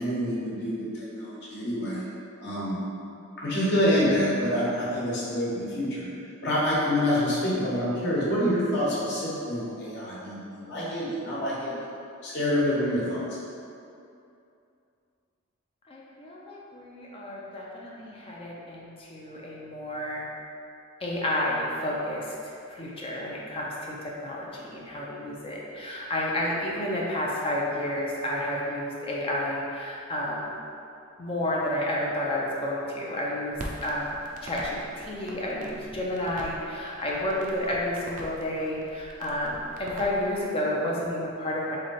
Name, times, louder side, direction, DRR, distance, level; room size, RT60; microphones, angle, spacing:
voice 1, 0.0-2.0 2.4-2.8 3.4-6.1 6.4-11.9 12.2-13.2, equal, 55° left, -7 dB, 1.2 m, -27 dB
voice 2, 15.9-20.2 21.0-30.6 31.2-41.8, left 1 dB, 25° left, -4 dB, 0.5 m, -31 dB
Crackle, 33.5-40.5, right 1 dB, 40° right, 0.5 m, -43 dB
3.6 x 3.2 x 4.1 m, 2.6 s
head